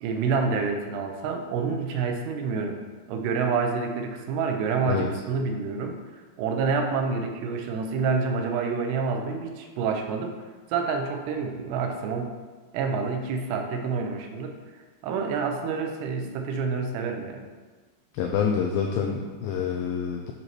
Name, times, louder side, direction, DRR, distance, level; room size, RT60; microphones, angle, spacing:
voice 1, 0.0-2.8 3.1-6.0 6.4-10.4 10.7-12.4 12.7-14.6 15.0-17.5, right 5 dB, 85° right, 4 dB, 2.8 m, -28 dB
voice 2, 18.1-20.3, left 7 dB, 90° left, 2 dB, 2.0 m, -27 dB
9.5 x 3.2 x 4.4 m, 1.4 s
omnidirectional pair, 4.7 m